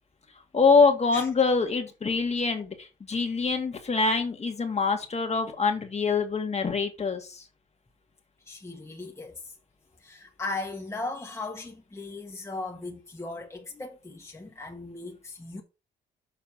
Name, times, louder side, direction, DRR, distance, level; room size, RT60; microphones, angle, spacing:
voice 1, 0.5-7.4, left 4 dB, 35° left, 2.0 m, -25 dB
voice 2, 8.4-9.5 10.0-15.6, left 3 dB, 15° left, 1.5 m, -37 dB
7.0 x 4.0 x 5.9 m
cardioid pair, 90°, 20 cm